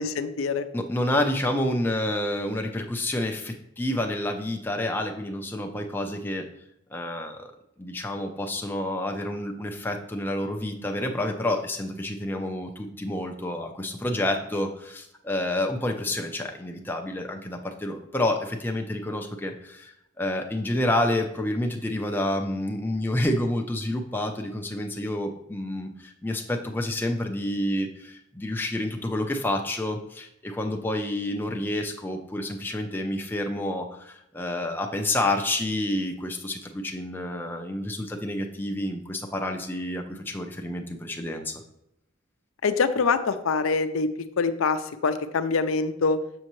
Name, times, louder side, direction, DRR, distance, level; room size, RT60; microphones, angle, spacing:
voice 1, 0.0-0.6 42.6-44.1 44.4-46.2, left 4 dB, 85° left, 9 dB, 0.5 m, -24 dB
voice 2, 0.7-6.5 6.9-7.5 7.8-41.6, left 1 dB, 10° left, 3 dB, 0.5 m, -29 dB
6.6 x 6.2 x 3.1 m, 0.79 s
head